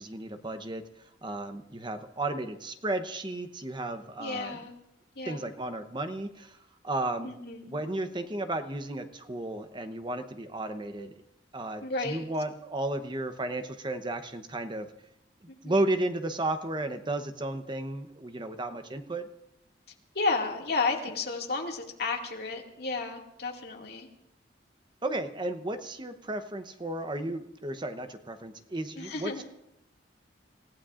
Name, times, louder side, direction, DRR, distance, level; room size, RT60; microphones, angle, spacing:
voice 1, 0.0-4.6 5.2-6.6 6.8-7.3 7.6-11.1 11.5-14.9 15.6-19.2 25.0-29.5, right 2 dB, 25° right, 8 dB, 0.9 m, -33 dB
voice 2, 4.2-4.8 5.2-5.5 7.2-7.8 11.8-12.2 15.5-15.7 20.1-24.1 29.0-29.4, left 3 dB, 55° left, 0 dB, 2.2 m, -32 dB
28.0 x 15.5 x 2.5 m, 0.85 s
head